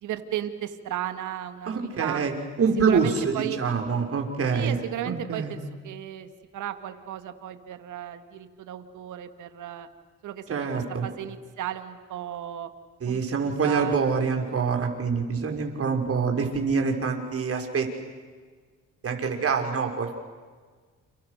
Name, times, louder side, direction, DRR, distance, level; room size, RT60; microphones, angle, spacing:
voice 1, 0.0-2.2 2.9-3.6 4.5-9.9 10.2-12.7 13.1-14.0, right 11 dB, 80° right, 9 dB, 2.2 m, -35 dB
voice 2, 1.7-2.3 2.6-4.8 5.0-5.6 10.5-11.1 13.0-17.9 19.0-20.2, right 5 dB, 50° right, 3 dB, 5.7 m, -26 dB
29.5 x 29.5 x 6.7 m, 1.5 s
cardioid pair, 90°, 30 cm